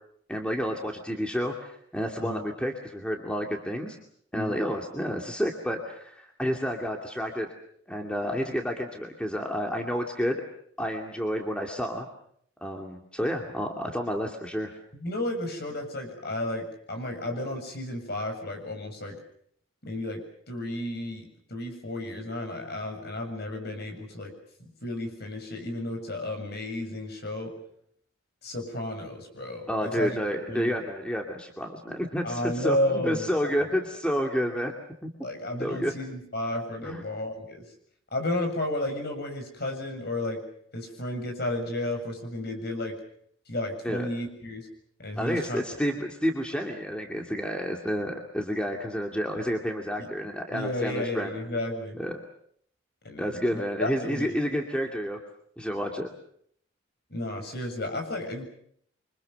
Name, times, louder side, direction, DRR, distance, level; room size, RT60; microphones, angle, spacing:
voice 1, 0.3-4.0 4.3-7.5 7.9-10.4 10.8-12.1 12.6-14.7 29.7-34.7 35.0-35.1 35.6-35.9 36.8-37.0 43.8-44.1 45.2-51.4 52.0-52.2 53.2-55.2 55.6-56.1, equal, 5° left, 2 dB, 2.4 m, -30 dB
voice 2, 14.9-19.2 19.8-24.3 24.6-27.5 28.4-30.2 30.5-30.7 32.2-33.5 35.2-37.6 38.1-40.4 40.7-43.0 43.5-44.7 45.0-45.6 50.0-50.1 50.5-52.0 53.0-54.3 57.1-58.5, left 1 dB, 50° left, 4 dB, 7.1 m, -32 dB
28.5 x 25.0 x 6.7 m, 0.66 s
head